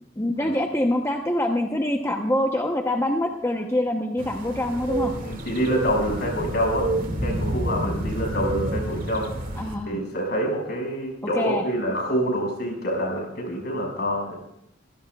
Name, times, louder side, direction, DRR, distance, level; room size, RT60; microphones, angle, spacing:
voice 1, 0.2-5.1 9.5-10.0 11.3-11.6, left 1 dB, 15° left, 2 dB, 0.8 m, -25 dB
sound 1, 4.2-9.8, right 1 dB, 45° right, 2.1 m, -29 dB
voice 2, 5.1-6.9 7.2-9.6 9.9-14.4, equal, 55° left, 1 dB, 5.5 m, -26 dB
25.5 x 16.5 x 2.4 m, 0.79 s
head